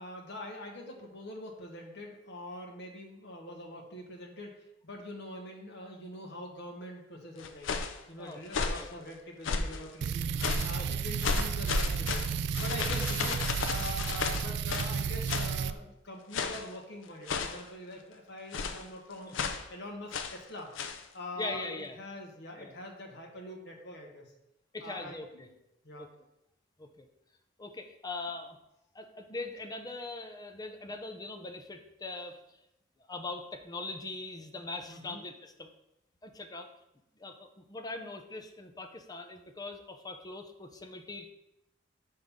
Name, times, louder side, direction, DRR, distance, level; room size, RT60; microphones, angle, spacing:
voice 1, 0.0-4.6 4.8-7.7 8.1-10.2 10.6-12.2 12.6-19.3 19.7-20.7 21.1-21.7 22.0-24.3 24.8-25.5 25.8-26.1 34.9-35.2, left 1 dB, 65° left, 1 dB, 1.4 m, -44 dB
sound 1, 7.4-8.0 8.5-8.9 9.4-9.8 10.4-10.8 11.2-15.0 15.3-15.6 16.3-16.7 17.3-17.7 18.5-18.9 19.3-19.7 20.1-20.4 20.7-21.0, left 4 dB, 85° left, 0.5 m, -33 dB
voice 2, 8.2-8.9 10.8-10.9 19.3-19.5 21.4-22.0 22.6-22.8 24.7-25.5 26.0-26.1 26.8-27.1 27.6-28.6 28.9-32.4 33.1-35.7 36.2-36.7 37.2-41.3, left 2 dB, 20° left, 6 dB, 0.6 m, -41 dB
sound 2, 10.0-15.7, right 6 dB, 60° right, 0.3 m, -33 dB
6.5 x 5.7 x 3.6 m, 0.86 s
head